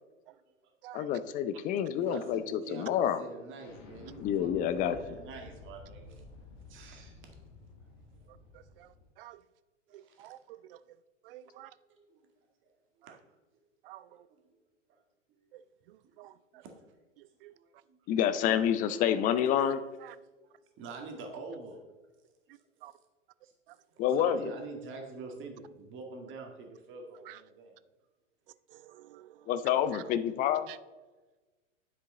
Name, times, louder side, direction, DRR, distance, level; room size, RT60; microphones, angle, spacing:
voice 1, 0.3-0.7 1.0-1.1 2.0-4.5 4.8-6.2 6.7-7.3 8.1-8.2 9.9-10.3 11.4-11.6 11.9-12.2 13.0-13.1 14.1-14.6 14.9-15.0 16.1-16.7 17.5-18.0 19.4-19.6 20.8-21.8 22.5-22.8 23.4-23.5 24.1-27.8, right 3 dB, 30° right, 2.0 m, -46 dB
voice 2, 0.9-3.2 4.2-5.0 18.1-19.8 24.0-24.5 29.5-30.7, left 9 dB, 20° left, 0.5 m, -28 dB
Explosion, 3.6-9.1, left 3 dB, 45° left, 1.9 m, -52 dB
voice 3, 8.5-8.9 9.2-9.4 9.9-10.8 11.2-11.7 13.8-14.1 15.5-15.6 15.9-16.6 17.4-17.5 20.0-20.2 22.8-22.9 27.3-27.4 28.7-29.4 30.7-30.8, right 14 dB, 50° right, 0.5 m, -50 dB
9.7 x 7.4 x 3.8 m
figure-of-eight pair, 100°, 38 cm